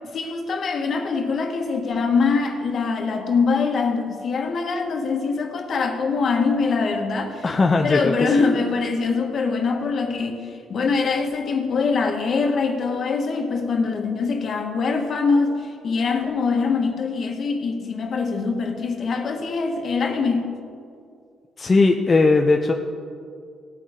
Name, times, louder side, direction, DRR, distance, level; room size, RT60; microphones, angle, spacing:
voice 1, 0.1-7.5 7.8-20.5, left 4 dB, 55° left, 3 dB, 1.5 m, -23 dB
voice 2, 7.4-8.3 21.6-22.7, left 3 dB, 30° left, 2 dB, 0.7 m, -18 dB
18.0 x 9.0 x 3.8 m, 2.4 s
cardioid pair, 90°, 0 cm